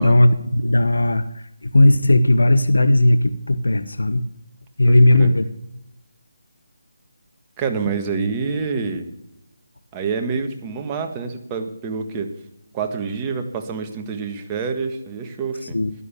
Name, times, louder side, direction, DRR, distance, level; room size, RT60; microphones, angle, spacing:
voice 1, 0.0-4.2 4.8-5.4 15.7-15.9, left 1 dB, 85° left, 11 dB, 0.9 m, -16 dB
voice 2, 4.9-5.3 7.6-9.1 9.9-12.3 12.7-15.8, right 5 dB, 20° right, 4 dB, 1.5 m, -27 dB
12.5 x 11.0 x 7.0 m, 0.84 s
figure-of-eight pair, 160°, 0 cm